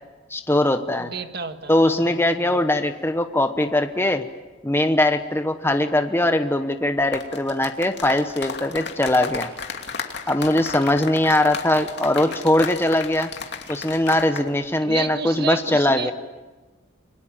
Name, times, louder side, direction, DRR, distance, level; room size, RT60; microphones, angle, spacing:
voice 1, 0.3-1.1 1.7-4.3 4.6-9.5 10.3-13.3 13.7-16.1, left 1 dB, 10° left, 7 dB, 1.0 m, -21 dB
voice 2, 1.0-2.6 11.5-12.4 14.8-16.1, right 4 dB, 50° right, 8 dB, 1.8 m, -33 dB
sound 1, 7.0-14.5 14.7-15.0, left 5 dB, 55° left, 2.7 m, -34 dB
29.0 x 22.5 x 8.9 m, 1.2 s
head